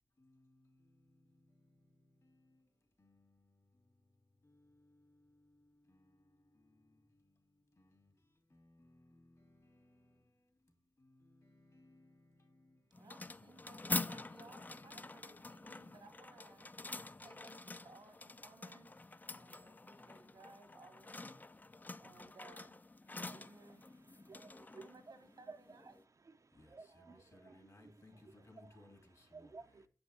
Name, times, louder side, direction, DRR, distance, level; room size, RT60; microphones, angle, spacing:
voice 1, 0.2-10.1 11.0-17.3 18.8-19.5 19.9-20.2 20.7-20.8 21.1-21.4 26.5-29.5, left 1 dB, 55° left, 2.6 m, -66 dB
sound 1, 12.9-26.0, left 2 dB, 25° left, 0.3 m, -46 dB
voice 2, 12.9-16.7 17.2-18.9 19.3-21.2 22.0-22.8 23.1-23.8 24.8-26.0 26.9-27.2 28.1-28.5 28.7-28.9, right 3 dB, 85° right, 1.2 m, -61 dB
voice 3, 23.1-25.2 25.5-28.9 29.3-29.9, right 4 dB, 50° right, 0.4 m, -57 dB
7.1 x 5.3 x 4.3 m
cardioid pair, 45°, 7 cm